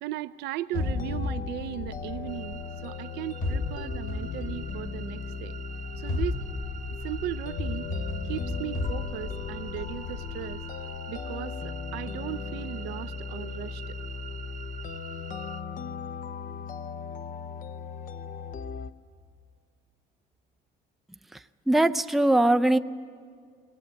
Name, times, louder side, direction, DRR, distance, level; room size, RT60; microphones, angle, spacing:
voice 1, 0.0-5.6 6.0-7.9 8.2-10.6 11.1-14.0, right 14 dB, 80° right, 13 dB, 0.6 m, -37 dB
sound 1, 0.7-18.9, left 5 dB, 50° left, 0.8 m, -38 dB
sound 2, 0.8-2.9 3.4-5.2 5.9-11.0, left 3 dB, 65° left, 3.4 m, -34 dB
sound 3, 2.3-15.6, right 9 dB, 50° right, 1.1 m, -46 dB
voice 2, 21.7-22.8, right 1 dB, ahead, 9 dB, 0.5 m, -21 dB
19.5 x 19.5 x 8.2 m, 2.2 s
cardioid pair, 110°, 17 cm